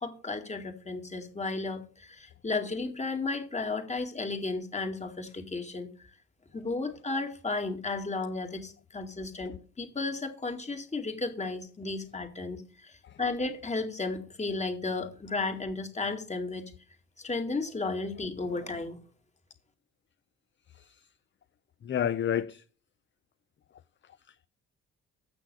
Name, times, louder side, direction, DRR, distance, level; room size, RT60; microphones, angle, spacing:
voice 1, 0.0-5.9 6.5-16.6 17.2-19.0, left 3 dB, 20° left, 2.2 m, -34 dB
voice 2, 20.7-21.1 21.8-22.6 24.3-24.4, left 9 dB, 40° left, 0.6 m, -31 dB
7.9 x 6.4 x 6.9 m
cardioid pair, 90°, 30 cm